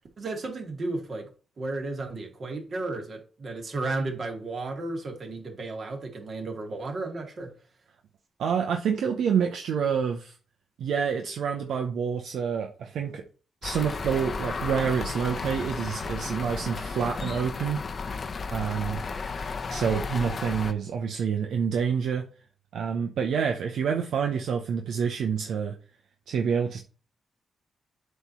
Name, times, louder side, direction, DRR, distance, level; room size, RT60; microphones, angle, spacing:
voice 1, 0.2-1.3 1.6-7.5, right 2 dB, 55° right, 2.1 m, -33 dB
voice 2, 8.4-10.3 10.8-13.2 13.6-17.8 18.5-19.0 19.7-22.3 22.7-25.7 26.3-26.8, right 7 dB, 80° right, 0.7 m, -27 dB
sound 1, 13.6-20.7, left 4 dB, 50° left, 0.8 m, -33 dB
8.0 x 3.1 x 5.6 m
cardioid pair, 60°, 0 cm